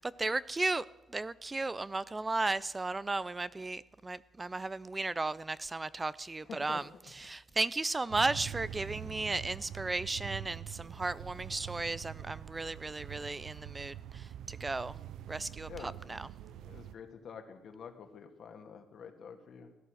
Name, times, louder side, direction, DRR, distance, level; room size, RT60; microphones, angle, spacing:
voice 1, 0.2-0.8 1.1-6.8 7.2-15.0 15.3-16.3, right 3 dB, 20° right, 19 dB, 0.5 m, -35 dB
voice 2, 6.4-6.8 15.7-15.9 16.5-19.7, left 6 dB, 60° left, 6 dB, 2.1 m, -48 dB
sound 1, 8.1-16.9, right 10 dB, 80° right, 0.6 m, -45 dB
16.5 x 11.0 x 6.4 m, 1.1 s
cardioid pair, 90°, 0 cm